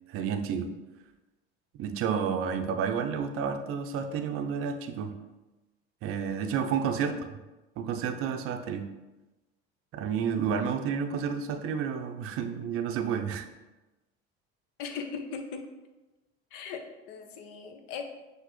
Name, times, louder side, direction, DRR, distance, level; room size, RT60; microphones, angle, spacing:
voice 1, 0.1-0.7 1.7-5.2 6.0-7.1 7.8-8.9 9.9-13.5, right 7 dB, 45° right, 7 dB, 0.5 m, -30 dB
voice 2, 14.8-15.7 16.5-18.0, left 5 dB, 70° left, 5 dB, 0.8 m, -39 dB
5.9 x 2.6 x 3.0 m, 1.1 s
supercardioid pair, 95°, 31 cm